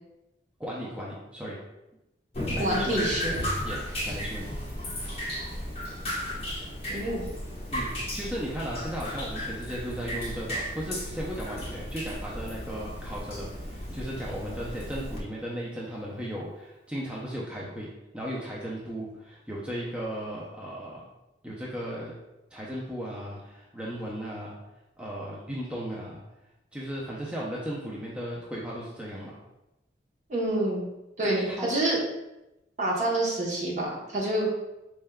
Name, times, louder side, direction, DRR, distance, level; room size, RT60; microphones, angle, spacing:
voice 1, 0.6-1.6 2.5-3.0 3.6-4.5 7.7-17.9 18.1-21.0 21.4-22.1 22.5-24.6 25.0-26.2 26.7-29.4 31.2-31.7, equal, 5° right, -5 dB, 0.4 m, -36 dB
Drip, 2.3-15.2, equal, 35° left, 1.0 m, -34 dB
voice 2, 2.6-3.4 6.9-7.3 30.3-30.9 31.2-32.0 32.8-34.5, right 1 dB, 45° right, -3 dB, 0.9 m, -27 dB
4.3 x 3.4 x 2.2 m, 0.95 s
head